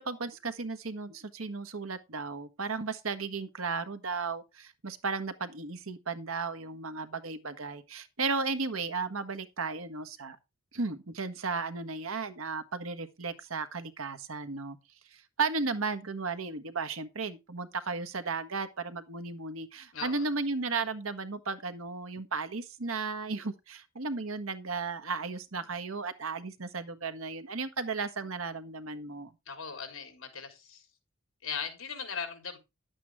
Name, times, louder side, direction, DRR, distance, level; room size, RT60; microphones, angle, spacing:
voice 1, 0.0-10.4 10.7-14.8 15.4-29.3, right 4 dB, 90° right, 1.3 m, -35 dB
voice 2, 19.9-20.3 29.5-30.9 31.4-32.6, left 6 dB, 70° left, 3.9 m, -39 dB
11.0 x 8.5 x 3.6 m
head